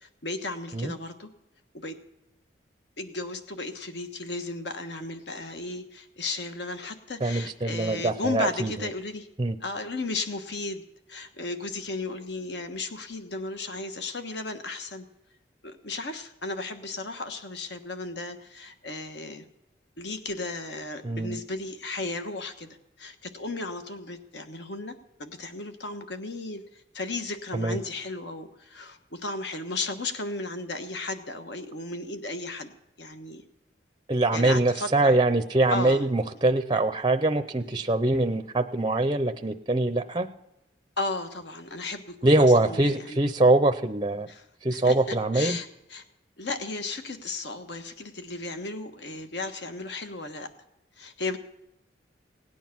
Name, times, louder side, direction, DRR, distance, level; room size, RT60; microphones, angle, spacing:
voice 1, 0.0-1.3 1.7-1.9 3.0-9.3 9.6-15.0 15.6-19.4 20.0-32.7 33.0-33.4 34.3-35.2 35.7-36.0 41.0-43.2 44.3-46.0 46.4-50.5 51.0-51.4, left 3 dB, 65° left, 7 dB, 1.2 m, -35 dB
voice 2, 7.2-8.7 9.4-9.5 21.0-21.4 27.5-27.8 34.1-40.3 42.2-44.3 44.6-45.6, right 2 dB, 25° right, 9 dB, 0.6 m, -23 dB
17.5 x 9.3 x 5.9 m, 0.89 s
head